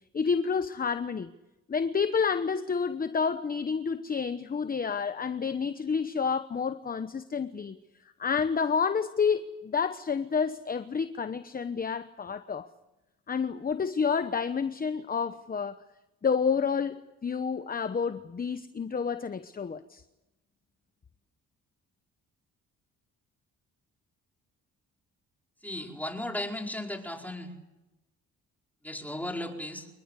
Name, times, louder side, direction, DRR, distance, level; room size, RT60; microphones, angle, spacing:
voice 1, 0.1-1.3 1.7-7.8 8.2-12.7 13.3-15.8 16.2-20.0, left 6 dB, 30° left, 1.0 m, -29 dB
voice 2, 25.6-27.5 28.8-29.9, left 1 dB, 5° left, 4.9 m, -35 dB
26.5 x 21.0 x 8.4 m
cardioid pair, 90°, 30 cm